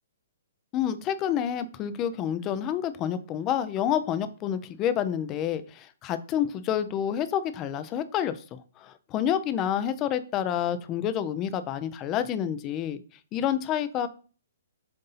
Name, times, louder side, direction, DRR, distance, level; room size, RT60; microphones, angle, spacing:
voice 1, 0.7-13.0 13.3-14.1, left 9 dB, 25° left, 12 dB, 0.5 m, -28 dB
7.7 x 2.6 x 5.5 m, 0.39 s
hypercardioid pair, 155°, 0 cm